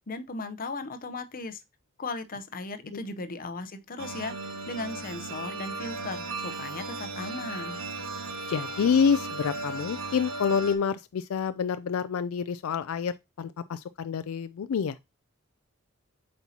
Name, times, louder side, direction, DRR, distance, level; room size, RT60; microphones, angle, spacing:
voice 1, 0.1-1.6 2.0-4.3 4.7-7.8, left 3 dB, 45° left, 0.7 m, -37 dB
sound 1, 4.0-10.7, right 3 dB, 80° right, 1.4 m, -36 dB
voice 2, 8.5-15.0, left 6 dB, 80° left, 0.4 m, -27 dB
8.0 x 4.4 x 2.8 m
head